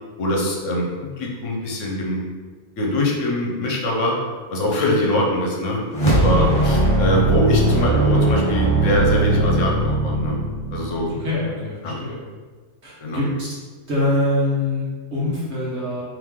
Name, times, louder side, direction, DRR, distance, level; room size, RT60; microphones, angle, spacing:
voice 1, 0.2-0.9 1.2-2.2 2.8-4.2 4.5-5.9 6.1-10.4 10.7-11.1 11.8-11.9 13.0-13.2, left 1 dB, 70° left, -1 dB, 1.1 m, -23 dB
sound 1, 5.9-11.3, right 2 dB, 30° left, 0.6 m, -19 dB
voice 2, 11.1-12.2 12.8-13.5 13.9-16.0, left 2 dB, 60° right, -8 dB, 1.6 m, -24 dB
3.3 x 3.3 x 3.6 m, 1.4 s
omnidirectional pair, 1.3 m